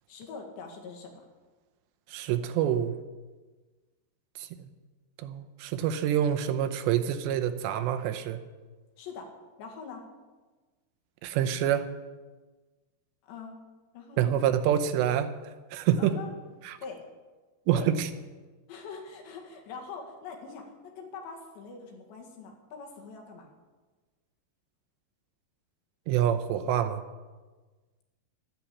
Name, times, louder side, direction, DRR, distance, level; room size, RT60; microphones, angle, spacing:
voice 1, 0.1-1.1 9.0-9.3 9.6-10.0 13.2-13.6 13.9-14.3 16.0-16.3 16.8-17.0 17.7-17.9 18.7-23.5, left 5 dB, 75° left, 1 dB, 4.2 m, -43 dB
voice 2, 2.1-3.0 4.4-4.7 5.2-8.4 11.2-11.9 14.2-15.3 15.7-16.1 16.7-16.8 17.7-18.1 26.1-27.0, right 10 dB, 85° right, 9 dB, 3.0 m, -27 dB
12.5 x 10.5 x 8.5 m, 1.3 s
omnidirectional pair, 5.0 m